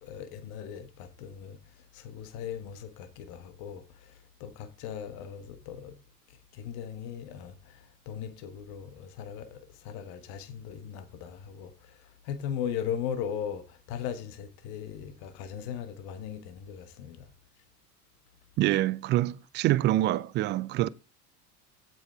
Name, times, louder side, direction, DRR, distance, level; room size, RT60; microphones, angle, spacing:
voice 1, 0.0-1.6 1.9-6.0 6.5-17.3, left 8 dB, 50° left, 1.5 m, -38 dB
voice 2, 18.6-20.9, right 15 dB, 25° right, 0.4 m, -26 dB
16.0 x 6.2 x 3.4 m
figure-of-eight pair, 70°, 48 cm